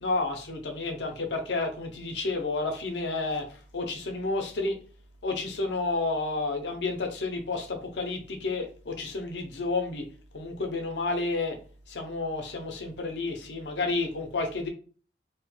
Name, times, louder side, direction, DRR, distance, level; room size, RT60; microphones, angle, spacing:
voice 1, 0.0-3.5 3.7-4.8 5.2-10.1 10.3-11.6 11.9-14.7, left 3 dB, 80° left, 3 dB, 0.6 m, -30 dB
2.8 x 2.2 x 3.1 m, 0.40 s
head